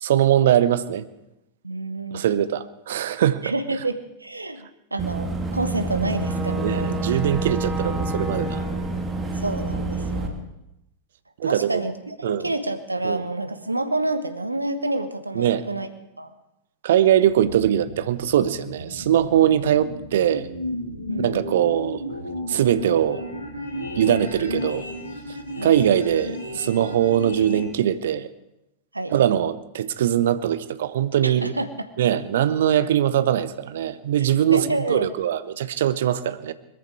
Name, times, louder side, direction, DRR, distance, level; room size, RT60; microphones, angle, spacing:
voice 1, 0.0-1.1 2.1-3.4 6.6-8.6 10.0-10.1 11.4-11.8 12.2-12.4 13.0-13.2 15.3-15.7 16.8-20.5 21.2-22.0 22.5-23.2 24.0-24.8 25.6-28.3 29.1-31.5 32.0-36.5, right 10 dB, 60° right, 15 dB, 0.8 m, -21 dB
voice 2, 1.6-2.2 3.4-7.0 9.3-10.3 11.4-15.9 16.2-16.3 21.1-21.4 25.6-25.7 28.9-29.2 31.2-31.9 34.5-35.1, right 2 dB, 85° right, 11 dB, 1.2 m, -28 dB
Boat Water vehicle / Engine, 5.0-10.3, right 2 dB, 20° right, 2.3 m, -27 dB
sound 1, 17.2-27.6, left 1 dB, 85° left, 3.0 m, -33 dB
21.0 x 14.0 x 4.7 m, 0.88 s
figure-of-eight pair, 90°, 0 cm